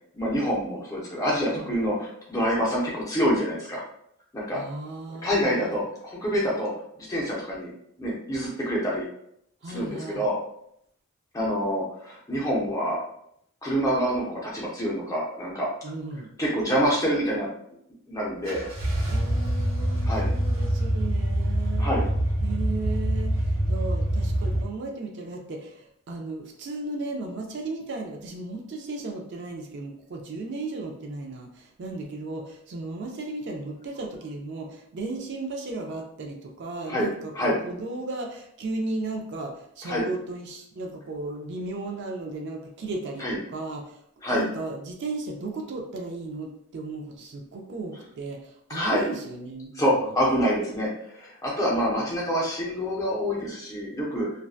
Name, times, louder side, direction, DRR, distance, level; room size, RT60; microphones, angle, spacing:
voice 1, 0.1-3.8 4.3-4.6 5.2-6.7 7.0-7.7 8.0-9.1 9.7-10.4 11.3-13.0 13.6-15.7 16.4-17.5 18.1-18.6 20.0-20.3 21.8-22.1 36.9-37.1 37.3-37.6 39.8-40.1 43.2-43.4 44.2-44.4 48.7-49.0 49.7-54.3, equal, 15° left, -4 dB, 0.5 m, -26 dB
voice 2, 4.5-5.8 9.6-10.3 15.8-16.3 19.1-21.9 22.4-44.1 44.3-50.4, right 2 dB, 50° right, 1 dB, 0.3 m, -35 dB
sound 1, 18.5-24.6, right 1 dB, 70° right, 0.9 m, -25 dB
2.6 x 2.1 x 2.3 m, 0.71 s
head